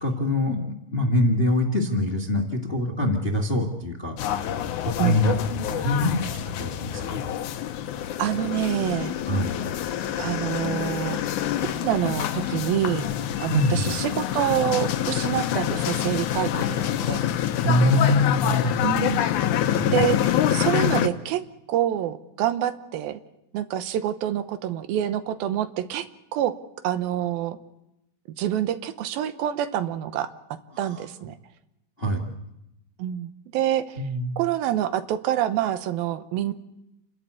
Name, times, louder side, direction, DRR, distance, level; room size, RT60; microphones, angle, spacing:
voice 1, 0.0-4.5 4.8-7.2 9.3-9.6 13.5-14.0 17.6-18.8 19.7-20.0 30.9-31.0 32.0-32.3 34.0-34.4, left 1 dB, 25° left, 2 dB, 1.2 m, -24 dB
sound 1, 4.2-21.1, left 11 dB, 70° left, 2.1 m, -26 dB
voice 2, 8.2-9.1 10.2-11.2 11.6-13.1 13.4-17.2 18.8-19.3 19.9-21.4 21.7-23.2 23.5-26.1 26.3-26.5 26.8-27.6 28.4-30.3 30.8-31.4 33.0-34.0 34.4-36.5, right 11 dB, 85° right, 11 dB, 2.8 m, -26 dB
29.0 x 12.5 x 8.3 m, 0.89 s
omnidirectional pair, 4.2 m